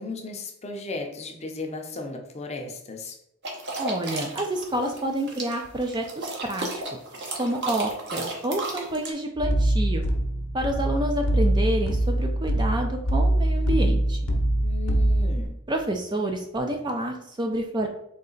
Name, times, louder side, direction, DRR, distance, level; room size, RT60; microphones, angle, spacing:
voice 1, 0.0-3.2 14.6-15.5, left 3 dB, 30° left, 3 dB, 0.6 m, -35 dB
sound 1, 3.4-9.1, right 2 dB, 50° right, 0.9 m, -33 dB
voice 2, 3.8-6.8 7.4-10.0 10.5-14.2 15.7-17.9, right 1 dB, 20° right, 3 dB, 0.4 m, -28 dB
sound 2, 9.4-15.5, right 1 dB, 75° left, 0.8 m, -23 dB
3.9 x 3.2 x 3.8 m, 0.77 s
head